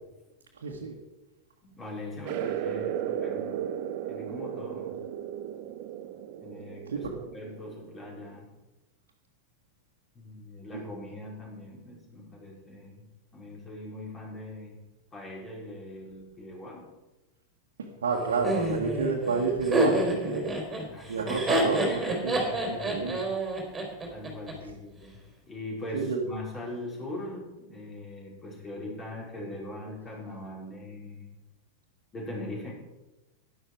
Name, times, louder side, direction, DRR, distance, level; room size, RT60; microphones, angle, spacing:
voice 1, 0.6-0.9 6.9-7.1 10.7-10.8 17.8-20.5 21.1-23.2 25.9-26.2, right 4 dB, 65° right, -2 dB, 1.8 m, -30 dB
voice 2, 1.6-3.6 4.1-5.0 6.4-8.5 10.1-13.1 13.3-14.8 15.1-16.9 20.9-21.4 24.1-25.2 25.5-31.3 32.1-32.7, left 1 dB, 20° left, -3 dB, 5.5 m, -41 dB
sound 1, 2.2-8.4, right 10 dB, 45° right, 0.9 m, -35 dB
Laughter, 18.4-24.5, right 1 dB, 10° right, 4.2 m, -28 dB
12.5 x 11.5 x 4.8 m, 1.1 s
figure-of-eight pair, 90°, 0 cm